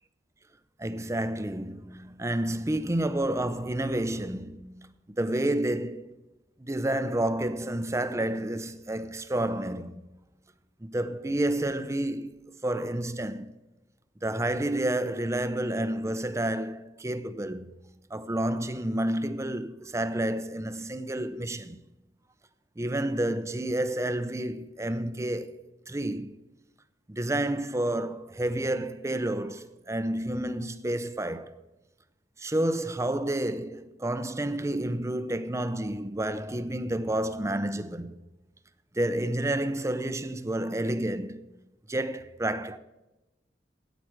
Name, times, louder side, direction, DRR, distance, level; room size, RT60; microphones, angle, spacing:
voice 1, 0.8-6.1 6.6-10.1 10.8-13.5 14.2-17.7 18.1-21.8 22.8-25.6 25.9-26.4 27.1-31.6 32.4-38.2 38.9-41.4 41.9-42.8, right 1 dB, 15° right, 0.6 m, -30 dB
13.0 x 9.4 x 4.6 m
head